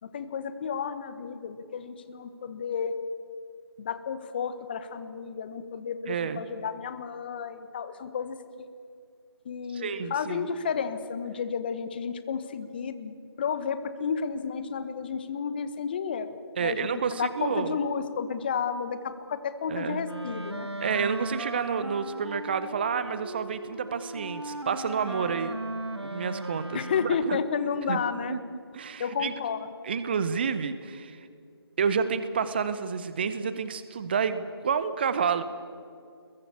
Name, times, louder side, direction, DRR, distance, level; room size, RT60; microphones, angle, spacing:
voice 1, 0.0-2.9 3.8-8.7 9.4-16.3 16.6-20.7 26.7-28.4 29.0-29.7, left 6 dB, 25° left, 11 dB, 1.3 m, -32 dB
voice 2, 6.1-6.4 9.7-10.5 16.6-17.8 19.7-20.0 20.8-25.5 26.0-27.4 27.9-28.0 28.3-29.3 29.8-31.2 31.8-35.4, right 6 dB, 25° right, 12 dB, 0.9 m, -29 dB
Wind instrument woodwind instrument, 20.0-27.5, right 2 dB, 90° right, 1.4 m, -37 dB
26.5 x 22.0 x 8.5 m, 2.4 s
figure-of-eight pair, 160°, 13 cm